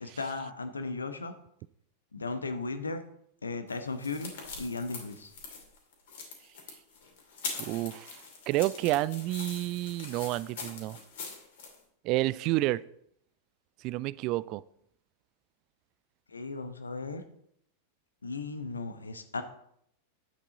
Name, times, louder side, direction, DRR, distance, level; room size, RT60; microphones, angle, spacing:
voice 1, 0.0-1.3 2.1-3.0 3.4-5.3 16.3-17.2 18.2-19.4, left 3 dB, 75° left, 9 dB, 1.0 m, -36 dB
sound 1, 3.7-11.7, left 4 dB, 55° left, 2.6 m, -43 dB
voice 2, 7.6-8.2 8.5-11.0 12.0-12.8 13.8-14.6, right 17 dB, 40° right, 20 dB, 0.3 m, -30 dB
10.0 x 8.4 x 3.9 m, 0.72 s
figure-of-eight pair, 90°, 0 cm